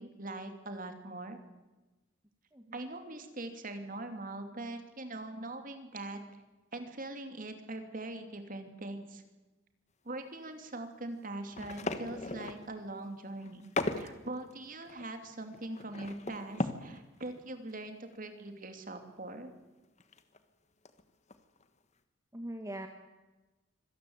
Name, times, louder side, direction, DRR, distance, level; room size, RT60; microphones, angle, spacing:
voice 1, 0.0-1.4 2.7-6.4 6.7-9.2 10.0-13.7 13.9-19.5, right 2 dB, 40° right, 7 dB, 2.8 m, -42 dB
voice 2, 2.5-2.9 22.3-22.9, right 1 dB, 15° right, 5 dB, 1.5 m, -42 dB
sound 1, 11.5-12.7 13.4-14.1 14.5-14.6 14.8-17.0 17.3-17.4 17.7-17.9 18.1-18.2 19.8-20.4 20.8-21.0 21.3-21.6, left 2 dB, 35° left, 1.4 m, -37 dB
25.5 x 18.0 x 8.0 m, 1.1 s
head